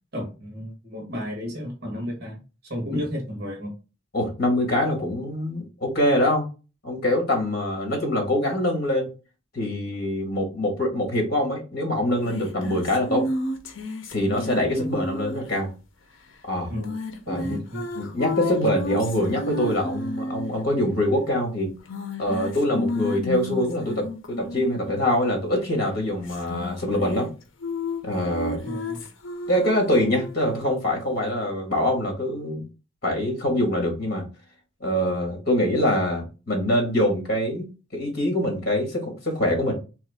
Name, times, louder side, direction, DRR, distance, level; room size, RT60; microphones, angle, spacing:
voice 1, 0.1-2.4 2.7-3.7 16.7-16.9 17.3-17.9 28.6-29.0, equal, 55° right, 1 dB, 1.4 m, -33 dB
voice 2, 4.1-6.4 6.8-9.1 9.5-13.3 14.1-15.7 16.5-16.7 17.3-17.6 17.9-21.7 22.2-27.3 28.0-28.7 29.5-32.7 33.0-34.2 34.8-37.7 37.9-39.7, left 1 dB, 50° left, 2 dB, 1.6 m, -24 dB
sound 1, 12.3-15.6 16.7-20.5 21.9-25.0 26.3-27.3 27.6-30.5, left 1 dB, 75° left, 0.7 m, -32 dB
3.6 x 3.0 x 3.4 m, 0.31 s
head